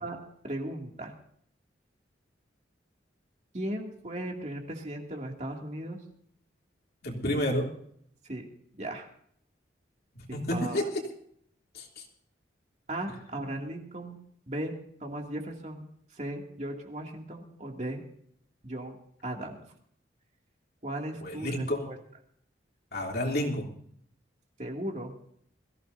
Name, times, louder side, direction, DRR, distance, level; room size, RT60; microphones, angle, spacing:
voice 1, 0.4-1.1 3.5-6.0 8.2-8.5 8.8-9.1 10.3-10.8 12.9-14.2 14.5-14.7 15.0-15.9 16.1-18.0 18.6-19.0 19.2-19.6 20.8-22.0 24.6-25.1, right 1 dB, 35° right, 1 dB, 2.5 m, -36 dB
voice 2, 7.0-7.7 10.1-11.0 11.7-12.0 21.2-21.9 22.9-23.7, left 1 dB, 55° left, 0 dB, 3.1 m, -30 dB
22.5 x 15.5 x 2.7 m, 0.66 s
head